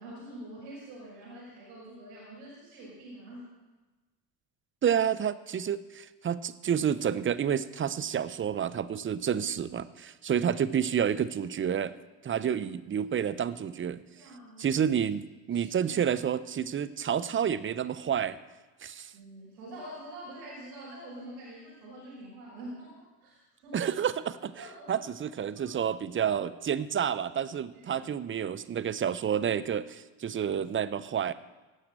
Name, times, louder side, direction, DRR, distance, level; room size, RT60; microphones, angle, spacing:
voice 1, 0.0-3.5 10.4-10.5 11.4-11.5 13.0-13.1 14.2-14.7 15.5-16.2 19.1-23.8 24.5-24.9 25.6-25.7 27.7-28.1, right 1 dB, 75° right, -6 dB, 5.6 m, -46 dB
voice 2, 4.8-11.9 12.2-14.0 14.6-18.4 18.8-19.1 23.7-24.5 24.9-31.3, right 8 dB, 25° right, 14 dB, 0.7 m, -29 dB
17.0 x 6.6 x 7.5 m, 1.2 s
hypercardioid pair, 70°, 46 cm